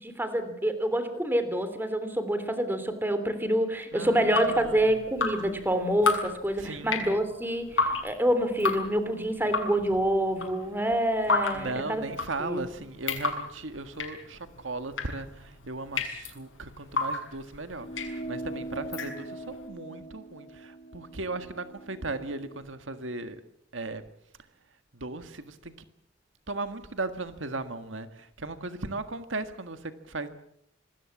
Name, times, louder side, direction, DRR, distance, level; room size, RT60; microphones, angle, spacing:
voice 1, 0.0-12.0 12.4-12.6, right 1 dB, 10° right, 10 dB, 3.2 m, -27 dB
voice 2, 3.9-4.9 6.6-7.0 11.5-23.4 23.7-24.0 25.0-25.7 26.5-30.3, right 3 dB, 75° right, 9 dB, 1.7 m, -37 dB
Drip, 4.1-19.6, left 4 dB, 75° left, 6.6 m, -33 dB
sound 1, 17.8-22.6, right 2 dB, 40° left, 3.2 m, -41 dB
26.0 x 21.0 x 7.3 m, 0.72 s
head